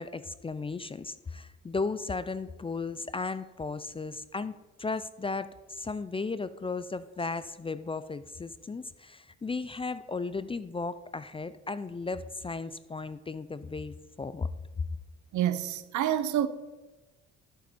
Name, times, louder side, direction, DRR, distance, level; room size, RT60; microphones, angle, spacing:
voice 1, 0.0-4.5 4.8-14.5, left 4 dB, 20° left, 0.4 m, -35 dB
voice 2, 15.3-16.5, right 11 dB, 75° right, 0.8 m, -27 dB
12.0 x 7.3 x 4.3 m
cardioid pair, 90°, 30 cm